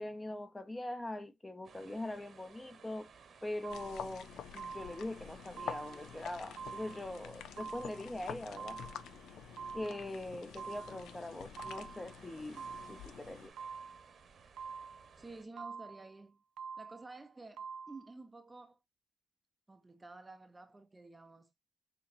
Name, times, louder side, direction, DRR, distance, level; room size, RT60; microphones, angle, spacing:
voice 1, 0.0-3.1 3.4-8.8 9.7-13.5, left 1 dB, 15° left, 0.7 m, -42 dB
sound 1, 1.6-15.4, right 5 dB, 50° right, 1.0 m, -59 dB
sound 2, 3.6-4.1 4.6-5.1 5.6-6.1 6.6-7.1 7.6-8.1 8.6-9.1 9.6-10.1 10.6-11.1 11.6-12.1 12.6-13.1 13.6-14.1 14.6-15.1 15.6-16.1 16.6-17.1 17.6-18.1, right 5 dB, 75° right, 0.3 m, -46 dB
sound 3, 3.7-13.5, left 9 dB, 80° left, 0.5 m, -48 dB
voice 2, 15.2-16.4 16.8-18.8 19.7-21.5, right 3 dB, 20° right, 0.6 m, -51 dB
6.2 x 2.9 x 2.6 m
cardioid pair, 90°, 0 cm